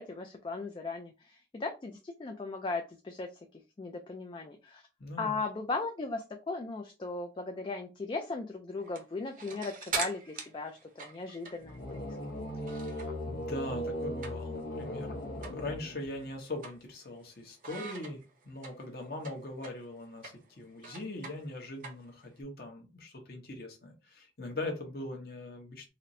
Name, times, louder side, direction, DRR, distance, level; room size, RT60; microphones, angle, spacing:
voice 1, 0.0-3.3 3.8-4.8 5.2-12.2, left 3 dB, 30° left, 4 dB, 0.3 m, -37 dB
voice 2, 5.0-5.4 12.5-25.9, left 2 dB, 60° left, 1 dB, 1.0 m, -41 dB
sound 1, 8.8-13.3 13.6-14.7 15.0-15.1 15.4-15.6 16.0-17.2 17.6-22.4, right 5 dB, 45° right, 0.7 m, -42 dB
sound 2, 11.6-16.3, equal, 75° left, 0.6 m, -38 dB
4.1 x 2.0 x 2.5 m, 0.28 s
head